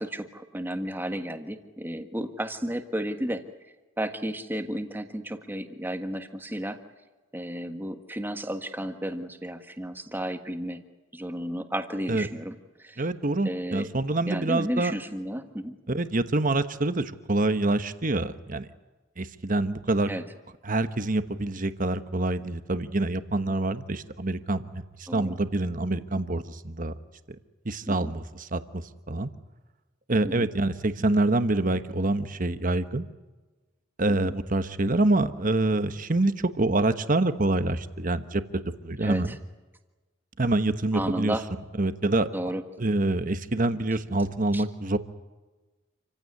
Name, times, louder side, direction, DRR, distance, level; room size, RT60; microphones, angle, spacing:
voice 1, 0.0-3.4 4.0-6.8 7.3-10.8 11.1-13.0 13.4-13.9 14.3-15.8 20.1-20.2 25.1-25.3 27.9-28.1 30.2-30.5 34.1-34.4 39.0-39.4 40.9-41.4 42.3-42.6 44.5-44.6, right 1 dB, 10° right, 7 dB, 1.5 m, -33 dB
voice 2, 13.0-14.9 15.9-18.7 19.2-20.1 20.6-26.9 27.6-29.3 30.1-33.1 34.0-39.4 40.4-41.3 41.8-42.3 42.8-45.0, right 2 dB, 45° right, 11 dB, 1.2 m, -26 dB
28.0 x 16.0 x 9.7 m, 1.2 s
head